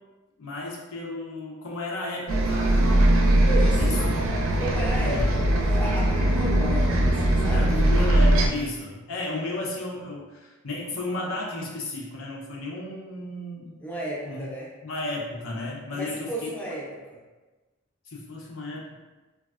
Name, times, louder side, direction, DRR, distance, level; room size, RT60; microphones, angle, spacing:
voice 1, 0.4-2.7 3.8-4.1 5.0-5.3 5.6-5.7 7.5-13.8 14.3-14.5 14.8-16.5 18.0-19.0, left 2 dB, 80° left, -3 dB, 0.6 m, -33 dB
Bus, 2.3-8.5, right 1 dB, 75° right, 0.4 m, -21 dB
voice 2, 3.5-4.0 4.6-5.5 5.8-7.9 13.8-14.7 15.9-16.8 17.1-17.2, equal, 10° left, -5 dB, 0.5 m, -33 dB
3.2 x 2.3 x 2.3 m, 1.2 s
head